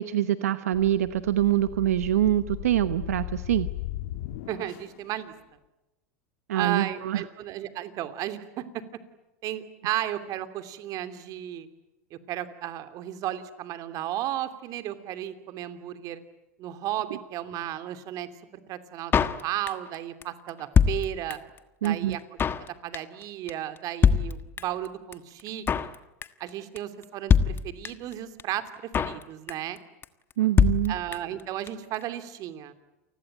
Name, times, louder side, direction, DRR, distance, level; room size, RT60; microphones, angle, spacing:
voice 1, 0.0-3.7 6.5-7.2 21.8-22.2 30.4-30.9, right 12 dB, 85° right, 13 dB, 1.0 m, -25 dB
sound 1, 0.7-5.0, left 16 dB, 70° left, 1.9 m, -37 dB
voice 2, 4.5-5.3 6.5-8.8 9.4-11.7 12.1-16.2 16.6-18.3 18.7-21.4 21.8-22.2 22.8-25.6 26.4-29.8 30.9-32.7, right 12 dB, 50° right, 11 dB, 2.9 m, -34 dB
Drum kit, 19.1-19.9 20.2-20.3 20.5-21.6 21.8-21.9 22.1-22.7 22.9-23.2 23.5-23.6 23.8-23.9 24.0-24.9 25.1-25.2 25.4-26.0 26.2-26.5 26.8-26.9 27.0-27.1 27.3-28.1 28.4-28.5 28.7-29.2 29.5-29.8 30.0-30.1 30.3-30.4 30.6-31.4 31.7-31.8 31.9-32.0, left 7 dB, 30° left, 1.4 m, -23 dB
29.0 x 20.5 x 9.2 m, 1.0 s
hypercardioid pair, 105°, 8 cm